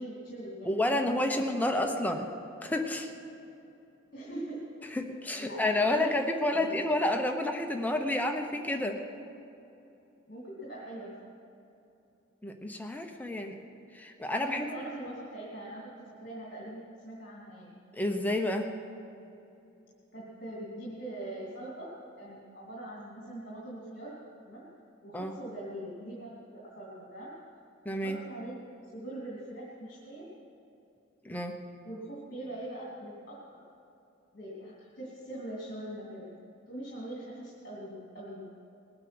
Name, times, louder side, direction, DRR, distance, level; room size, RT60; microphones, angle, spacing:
voice 1, 0.0-2.1 4.1-4.6 5.4-6.1 6.5-6.7 10.3-11.2 14.4-17.7 20.1-24.2 24.4-24.7 25.0-27.3 27.9-28.6 28.9-30.3 31.8-33.4 34.3-36.3 36.7-38.5, right 1 dB, 45° left, -5 dB, 2.6 m, -42 dB
voice 2, 0.7-2.3 2.6-3.1 4.9-9.0 12.4-13.6 13.9-14.7 17.9-18.7 25.1-25.3 27.8-28.2 31.2-31.6, left 1 dB, 10° left, 4 dB, 0.8 m, -30 dB
20.5 x 8.8 x 6.0 m, 2.8 s
head